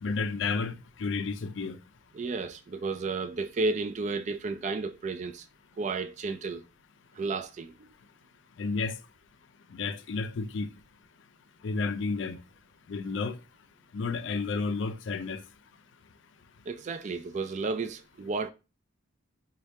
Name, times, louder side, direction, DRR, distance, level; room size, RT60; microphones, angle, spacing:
voice 1, 0.0-1.8 8.6-9.0 9.7-10.7 11.6-12.4 12.9-13.4 13.9-15.4, left 4 dB, 65° left, 0.4 m, -31 dB
voice 2, 2.1-5.5 5.8-6.6 7.1-7.9 16.7-18.5, right 3 dB, 35° right, 0.3 m, -32 dB
3.3 x 2.3 x 4.1 m
head